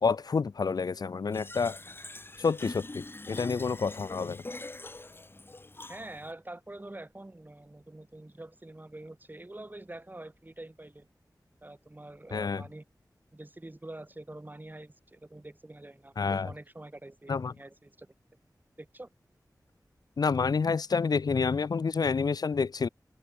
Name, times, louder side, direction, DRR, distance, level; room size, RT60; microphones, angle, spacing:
voice 1, 0.0-1.8 2.4-4.4 12.3-12.6 16.2-16.5 17.3-17.5 20.2-22.9, left 5 dB, 70° left, 0.5 m, -28 dB
Fill (with liquid), 1.3-6.3, left 2 dB, 35° left, 1.0 m, -43 dB
voice 2, 5.9-11.1 11.6-12.8 13.3-18.1 18.8-19.1, right 2 dB, 25° right, 2.2 m, -46 dB
wide cardioid pair, 60°, 7 cm